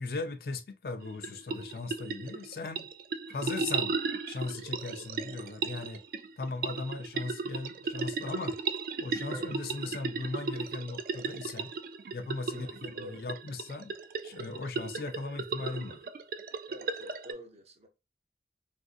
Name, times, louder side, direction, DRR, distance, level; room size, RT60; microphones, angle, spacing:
voice 1, 0.0-2.9 3.3-4.0 4.3-6.0 6.4-8.6 9.0-11.7 12.1-13.9 14.2-16.0, left 3 dB, 55° left, 0.4 m, -38 dB
sound 1, 1.0-17.3, right 4 dB, 55° right, 0.3 m, -36 dB
voice 2, 12.5-13.2 16.7-17.9, equal, 35° right, 0.7 m, -47 dB
3.5 x 2.5 x 2.4 m
head